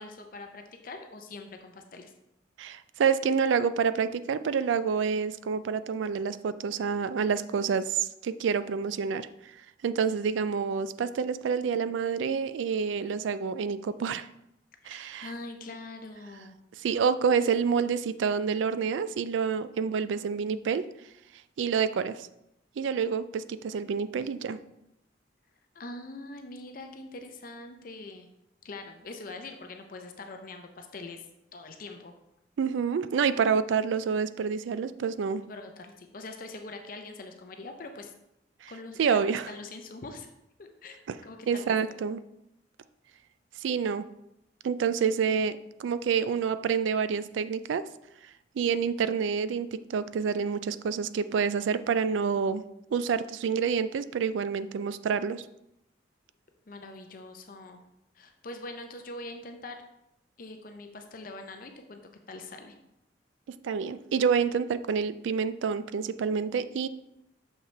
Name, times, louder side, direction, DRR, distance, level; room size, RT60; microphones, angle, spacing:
voice 1, 0.0-2.1 14.8-16.6 25.7-28.3 28.6-31.2 31.5-32.1 35.5-38.1 38.7-40.3 40.6-40.9 41.2-41.8 56.7-57.8 58.1-59.8 60.4-62.0 62.3-62.7, left 2 dB, 50° left, 5 dB, 0.5 m, -43 dB
voice 2, 2.6-9.3 9.8-14.3 14.9-15.3 16.8-20.8 21.6-22.3 22.8-24.6 32.6-35.4 38.6-38.7 39.0-39.5 41.1-41.2 41.5-42.2 43.6-44.1 44.6-47.8 48.6-52.6 52.9-55.4 63.6-66.9, right 6 dB, 80° right, 14 dB, 0.3 m, -28 dB
6.6 x 5.6 x 3.2 m, 0.86 s
head